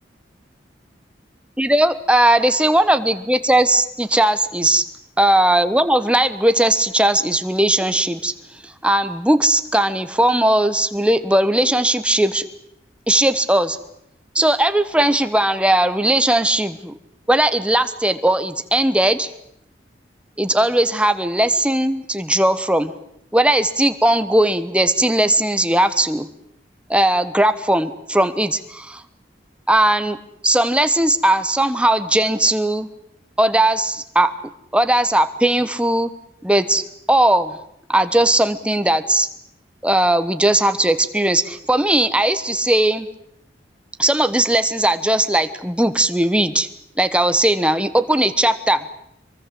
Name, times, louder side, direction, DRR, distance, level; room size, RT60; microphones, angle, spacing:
voice 1, 1.6-4.9 5.2-8.3 8.6-12.4 13.1-13.8 14.3-16.9 17.3-19.3 20.4-22.9 23.3-26.3 26.9-29.0 29.7-30.2 30.4-32.9 33.4-34.3 34.7-36.1 36.4-37.6 37.9-39.3 39.8-43.1 44.0-46.7 47.0-48.8, right 1 dB, 5° right, 11 dB, 1.1 m, -18 dB
23.5 x 23.0 x 7.8 m, 0.76 s
head